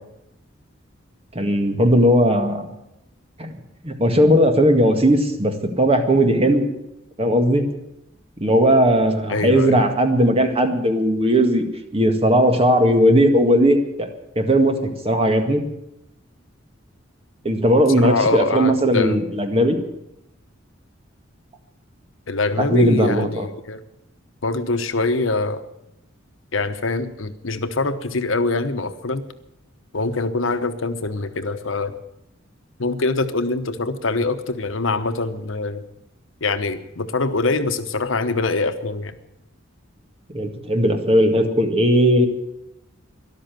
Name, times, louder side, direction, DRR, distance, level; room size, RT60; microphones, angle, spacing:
voice 1, 1.4-2.7 3.4-3.5 3.8-6.7 7.2-7.7 8.4-11.6 11.9-14.1 14.4-15.6 17.4-19.8 22.6-23.5 40.3-42.3, equal, 30° right, 5 dB, 1.9 m, -17 dB
voice 2, 9.3-9.8 18.0-19.2 22.3-23.8 24.4-25.6 26.5-29.2 29.9-32.0 32.8-35.8 36.4-39.1, left 3 dB, 75° left, 10 dB, 1.1 m, -24 dB
13.5 x 12.0 x 9.2 m, 0.85 s
head